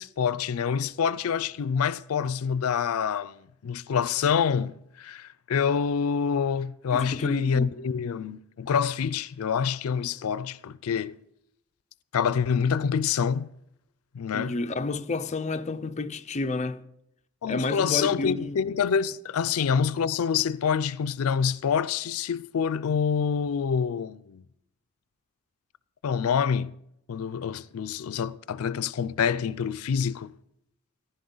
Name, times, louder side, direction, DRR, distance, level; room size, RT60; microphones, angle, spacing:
voice 1, 0.0-11.2 12.1-13.5 14.1-14.6 17.4-24.4 26.0-26.7 27.1-30.3, left 7 dB, 90° left, 0.4 m, -26 dB
voice 2, 6.9-7.7 14.3-16.8 17.5-18.6, left 3 dB, 35° left, 0.5 m, -30 dB
15.0 x 11.0 x 3.9 m
head